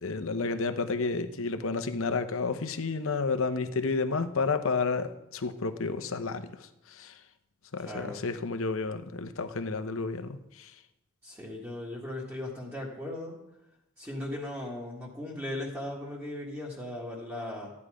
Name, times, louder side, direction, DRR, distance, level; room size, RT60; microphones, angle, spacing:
voice 1, 0.0-6.4 6.9-7.1 7.7-10.7, left 4 dB, 65° left, 9 dB, 0.8 m, -31 dB
voice 2, 7.8-8.2 11.2-13.4 14.0-17.7, left 1 dB, 10° right, -5 dB, 1.9 m, -37 dB
13.5 x 9.7 x 5.0 m, 0.92 s
head